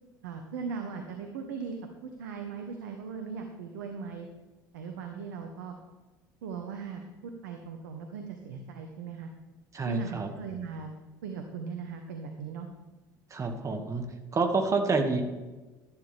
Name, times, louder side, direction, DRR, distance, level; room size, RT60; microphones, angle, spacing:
voice 1, 0.2-1.8 2.0-4.3 4.7-5.7 6.4-9.3 9.8-10.9 11.2-12.7, right 5 dB, 75° right, 4 dB, 1.2 m, -38 dB
voice 2, 9.7-10.3 13.3-14.0 14.3-15.2, right 4 dB, 30° right, 5 dB, 2.0 m, -28 dB
12.0 x 12.0 x 3.5 m, 1.2 s
hypercardioid pair, 70°, 10 cm